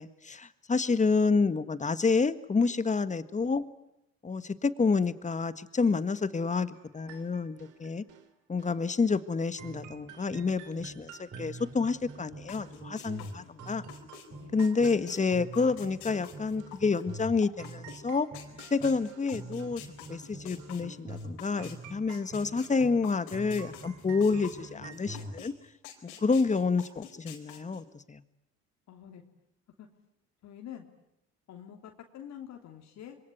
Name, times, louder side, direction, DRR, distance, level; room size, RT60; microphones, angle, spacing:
voice 1, 0.0-3.6 4.2-8.0 8.5-13.8 14.5-18.3 18.7-25.5 26.2-28.2, left 4 dB, 25° left, 13 dB, 1.6 m, -29 dB
sound 1, 6.7-8.3 8.6-8.8 9.1-9.3 9.6-13.3 13.6-15.8 16.1-16.8 17.1-17.3 17.6-19.8 20.1-20.3 20.6-20.8 21.1-21.3 21.6-25.4, right 9 dB, 75° right, 3.1 m, -54 dB
sound 2, 9.6-11.0 11.3-15.0 15.3-19.0 19.3-23.0 23.3-25.4, right 2 dB, 35° right, 5.3 m, -45 dB
sound 3, 12.5-14.3 14.6-21.8 22.1-25.5 25.8-27.8, left 11 dB, 85° left, 4.4 m, -48 dB
voice 2, 13.1-13.6 14.3-14.7 24.6-24.9 26.3-26.5 28.9-29.2 29.8-29.9 30.4-30.9 31.5-33.2, left 10 dB, 60° left, 3 dB, 3.3 m, -47 dB
26.0 x 23.0 x 9.5 m, 0.81 s
supercardioid pair, 75°, 30 cm